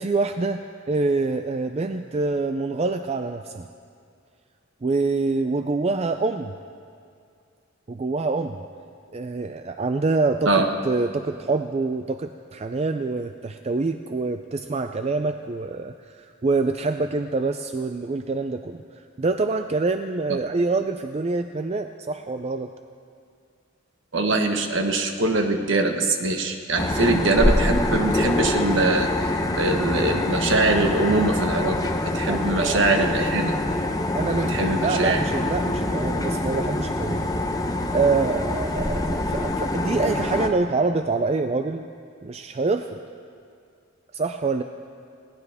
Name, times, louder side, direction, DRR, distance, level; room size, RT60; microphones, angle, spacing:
voice 1, 0.0-3.7 4.8-6.5 7.9-8.6 9.1-22.7 32.3-32.8 34.1-37.3 37.9-41.8 42.2-43.0 44.1-44.6, right 3 dB, 30° right, 7 dB, 0.4 m, -26 dB
voice 2, 24.1-29.3 29.6-31.8 32.0-33.5 34.3-35.2, right 2 dB, 60° right, 4 dB, 1.3 m, -22 dB
sound 1, 26.8-40.5, left 1 dB, 15° left, 0.7 m, -25 dB
20.5 x 17.5 x 3.5 m, 2.3 s
head